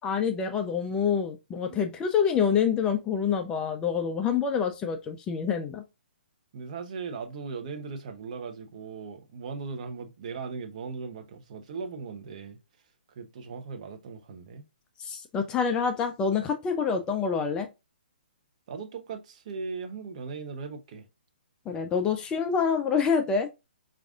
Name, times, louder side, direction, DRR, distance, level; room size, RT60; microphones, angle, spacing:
voice 1, 0.0-5.8 15.0-17.7 21.7-23.5, left 6 dB, 15° left, 0.3 m, -27 dB
voice 2, 6.5-12.6 13.2-14.7 18.7-21.1, right 5 dB, 40° right, 0.6 m, -38 dB
4.6 x 2.5 x 2.4 m
figure-of-eight pair, 130°, 6 cm